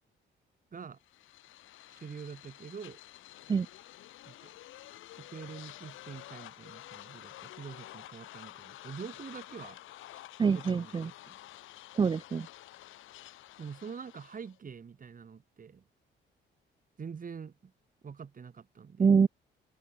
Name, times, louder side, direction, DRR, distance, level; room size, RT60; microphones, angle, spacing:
sound 1, 1.0-14.6, left 15 dB, 80° left, 1.2 m, -50 dB
voice 1, 1.9-3.0 4.3-4.5 5.2-9.8 10.1-10.2 10.5-11.4 13.6-15.8 17.0-17.7 18.0-19.1, right 6 dB, 45° right, 7.7 m, -45 dB
voice 2, 10.4-11.1 11.9-12.5 19.0-19.3, right 5 dB, 25° right, 0.4 m, -25 dB
cardioid pair, 90°, 20 cm